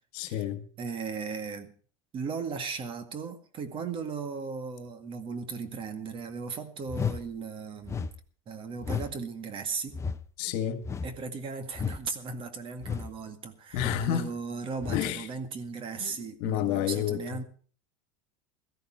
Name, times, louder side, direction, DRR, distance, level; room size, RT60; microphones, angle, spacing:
voice 1, 0.1-0.7 10.4-10.8 13.7-14.3 14.9-15.3 16.0-16.1 16.4-17.2, left 10 dB, 60° left, 1.8 m, -29 dB
voice 2, 0.8-1.7 2.1-8.1 8.5-10.0 11.0-17.4, right 5 dB, 30° right, 2.0 m, -37 dB
sound 1, 6.9-7.2 7.8-8.1 8.8-9.1 9.9-10.2 10.8-11.2 11.7-12.0 12.8-13.1 13.8-14.1 14.8-15.1, left 6 dB, 15° left, 0.7 m, -32 dB
17.0 x 14.0 x 4.5 m
supercardioid pair, 130°, 16 cm